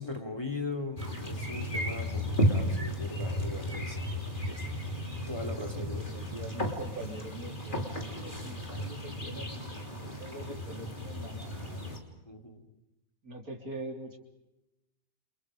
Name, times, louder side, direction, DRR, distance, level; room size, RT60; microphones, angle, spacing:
voice 1, 0.0-4.7 5.3-6.1 12.2-12.7, left 2 dB, 15° left, 3 dB, 2.9 m, -39 dB
sound 1, 1.0-12.0, equal, 30° left, 3.7 m, -34 dB
voice 2, 4.1-4.5 5.7-12.0 13.2-14.2, right 2 dB, 70° right, 3 dB, 3.8 m, -44 dB
29.0 x 26.5 x 5.1 m, 0.96 s
omnidirectional pair, 1.6 m